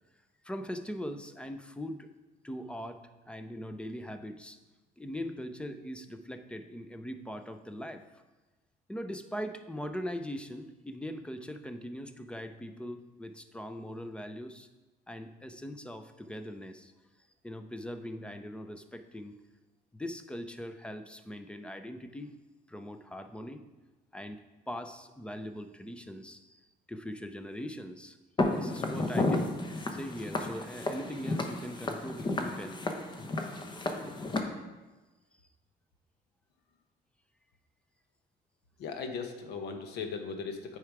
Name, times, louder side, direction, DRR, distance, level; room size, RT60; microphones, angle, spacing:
voice 1, 0.4-2.1 2.4-4.6 5.0-8.0 8.9-14.7 15.1-16.9 17.4-19.4 19.9-22.3 22.7-23.6 24.1-26.6 26.9-28.2 28.4-29.5 29.9-32.8, equal, 5° left, 8 dB, 0.5 m, -41 dB
Walk footsteps, 28.4-34.4, left 2 dB, 25° left, 0.9 m, -32 dB
voice 2, 38.8-40.8, left 5 dB, 75° left, 5 dB, 1.1 m, -38 dB
8.7 x 4.8 x 4.7 m, 1.2 s
cardioid pair, 110°, 17 cm